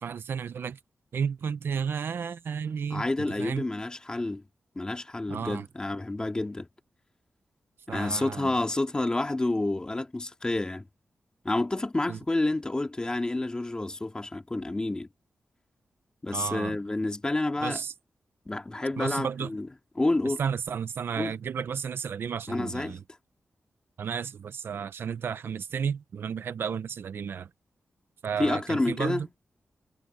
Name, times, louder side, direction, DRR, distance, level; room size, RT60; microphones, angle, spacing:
voice 1, 0.0-0.8 1.1-3.6 5.3-5.7 7.9-8.5 12.1-12.2 16.3-16.8 17.6-17.9 19.0-19.5 20.2-23.0 24.0-27.5 28.2-29.3, right 7 dB, 75° right, 0.7 m, -32 dB
voice 2, 2.9-4.4 4.8-6.7 7.9-10.9 11.4-15.1 16.2-17.8 18.5-19.7 20.0-20.4 21.2-21.4 22.5-23.0 28.4-29.3, left 2 dB, 20° left, 2.4 m, -29 dB
wide cardioid pair, 110°, 4 cm